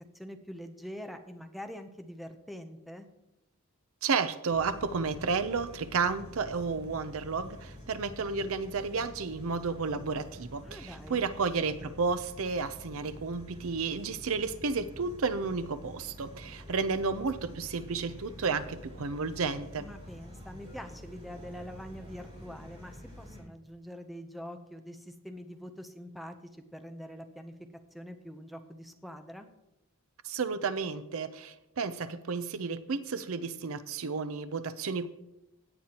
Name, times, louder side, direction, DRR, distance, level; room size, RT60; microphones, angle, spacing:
voice 1, 0.1-3.1 10.6-11.2 19.8-27.5 27.9-29.5, equal, ahead, 7 dB, 0.6 m, -44 dB
voice 2, 4.0-19.9 30.2-35.1, right 4 dB, 65° right, 13 dB, 0.6 m, -32 dB
sound 1, 4.5-23.4, equal, 25° right, 4.8 m, -48 dB
17.0 x 9.2 x 2.9 m, 0.91 s
head